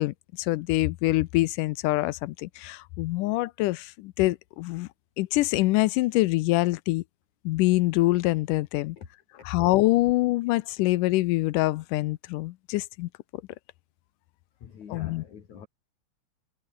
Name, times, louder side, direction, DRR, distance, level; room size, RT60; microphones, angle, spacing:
voice 1, 0.0-4.9 5.2-7.0 7.5-9.0 9.5-13.1 14.9-15.2, left 19 dB, 80° left, 2.1 m, -25 dB
voice 2, 9.0-9.5 14.6-15.7, left 7 dB, 60° left, 4.0 m, -46 dB
omnidirectional pair, 4.0 m